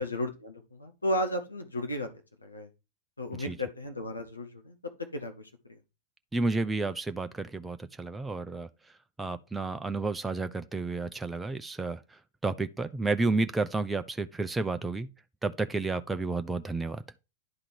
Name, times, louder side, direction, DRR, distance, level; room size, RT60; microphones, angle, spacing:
voice 1, 0.0-2.1 2.4-2.7 3.2-4.8 5.1-5.8, left 1 dB, 80° left, 1.3 m, -34 dB
voice 2, 6.3-8.7 9.2-15.1 15.4-17.0, right 3 dB, 10° right, 0.6 m, -31 dB
10.5 x 3.7 x 4.6 m
figure-of-eight pair, 90°, 0 cm